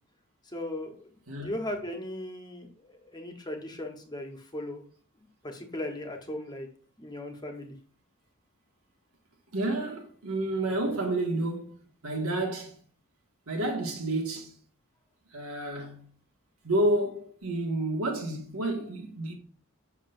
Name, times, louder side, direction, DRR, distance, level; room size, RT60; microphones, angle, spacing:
voice 1, 0.5-4.8 5.4-6.7 7.0-7.7, left 1 dB, 20° left, 1.2 m, -37 dB
voice 2, 9.5-11.8 12.0-12.8 13.5-14.6 15.3-16.1 16.6-19.4, right 1 dB, 90° right, 1.9 m, -30 dB
7.2 x 6.7 x 2.6 m
head